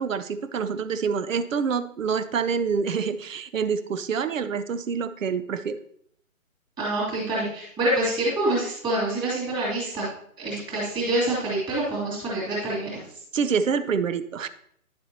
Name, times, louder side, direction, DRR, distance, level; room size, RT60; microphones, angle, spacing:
voice 1, 0.0-5.8 13.3-14.5, right 6 dB, 65° right, 12 dB, 0.7 m, -26 dB
voice 2, 6.8-10.1 10.4-13.0, right 1 dB, 10° right, -8 dB, 2.7 m, -26 dB
10.5 x 6.9 x 2.9 m, 0.68 s
figure-of-eight pair, 150°, 42 cm